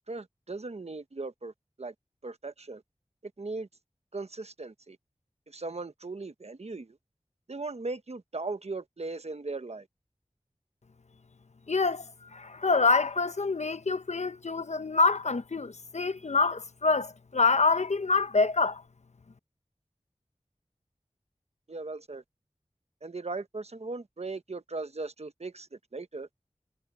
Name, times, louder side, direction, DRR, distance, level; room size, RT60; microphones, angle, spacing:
voice 1, 0.1-1.5 1.8-1.9 2.2-2.8 3.4-3.7 4.1-5.0 5.5-7.0 7.5-9.9 21.7-22.2 23.0-25.7 25.9-26.3, right 3 dB, 60° right, 1.1 m, -38 dB
voice 2, 11.7-18.8, left 4 dB, 70° left, 0.9 m, -26 dB
wide cardioid pair, 45°, 12 cm